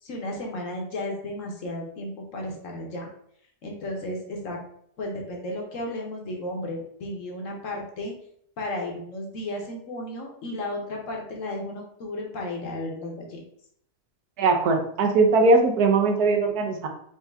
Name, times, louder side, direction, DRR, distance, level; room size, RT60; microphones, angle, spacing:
voice 1, 0.0-3.1 3.6-4.6 5.0-8.1 8.6-13.4, left 1 dB, 55° left, 0 dB, 1.2 m, -34 dB
voice 2, 14.4-16.9, right 3 dB, 75° right, 3 dB, 1.3 m, -20 dB
4.6 x 2.8 x 3.4 m, 0.67 s
omnidirectional pair, 1.7 m